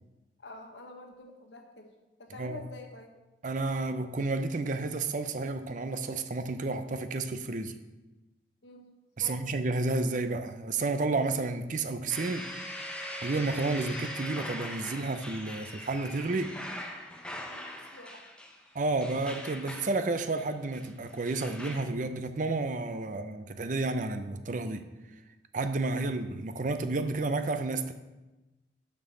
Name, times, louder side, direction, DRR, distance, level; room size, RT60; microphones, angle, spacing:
voice 1, 0.4-3.1 8.6-8.9 9.2-9.5 17.5-18.3, left 2 dB, 85° left, 1.2 m, -48 dB
voice 2, 3.4-7.8 9.2-12.5 13.2-16.6 18.7-24.9 25.5-27.9, right 3 dB, 45° right, 0.6 m, -31 dB
sound 1, 12.1-21.8, left 1 dB, 5° left, 0.8 m, -41 dB
6.3 x 5.5 x 6.9 m
head